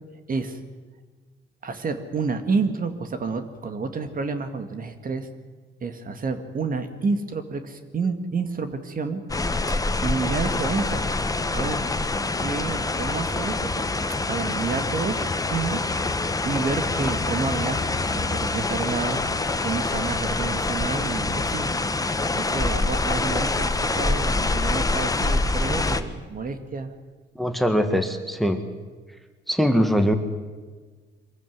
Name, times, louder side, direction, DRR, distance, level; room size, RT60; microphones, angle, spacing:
voice 1, 0.3-0.6 1.6-5.3 5.8-9.2 10.0-11.1 11.5-11.8 12.1-13.9 14.3-15.2 15.5-21.7 22.4-26.9, right 4 dB, 45° right, 8 dB, 2.1 m, -29 dB
sound 1, 9.3-26.0, left 3 dB, 15° left, 1.2 m, -25 dB
voice 2, 27.4-28.6 29.5-30.1, equal, ahead, 7 dB, 1.8 m, -21 dB
23.5 x 15.0 x 9.5 m, 1.4 s
cardioid pair, 90°, 20 cm